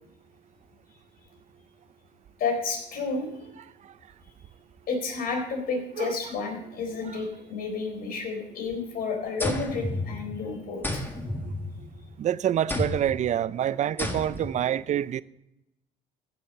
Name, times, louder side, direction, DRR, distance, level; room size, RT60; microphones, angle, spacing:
voice 1, 2.4-3.3 4.9-11.0, left 4 dB, 60° left, 4.1 m, -31 dB
sound 1, 9.4-10.4 10.8-12.1 12.7-13.2 14.0-14.6, left 1 dB, 10° left, 1.8 m, -31 dB
voice 2, 12.2-15.2, right 10 dB, 45° right, 0.5 m, -26 dB
15.5 x 7.0 x 5.6 m
cardioid pair, 110°, 17 cm